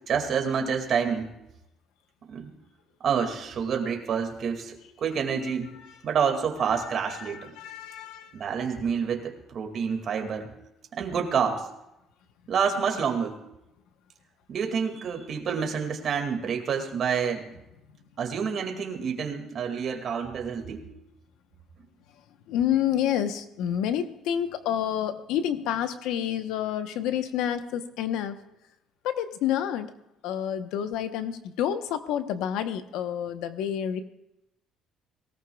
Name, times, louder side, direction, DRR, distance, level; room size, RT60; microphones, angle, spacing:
voice 1, 0.1-1.3 2.3-2.5 3.0-5.8 6.0-7.5 8.3-10.5 10.9-11.7 12.5-13.4 14.5-17.5 18.2-20.9, right 6 dB, 45° right, 3 dB, 2.2 m, -28 dB
voice 2, 7.2-8.4 22.5-28.4 29.0-29.9 30.2-34.0, left 10 dB, 85° left, 9 dB, 1.0 m, -29 dB
23.0 x 17.5 x 2.4 m, 0.86 s
cardioid pair, 145°, 0 cm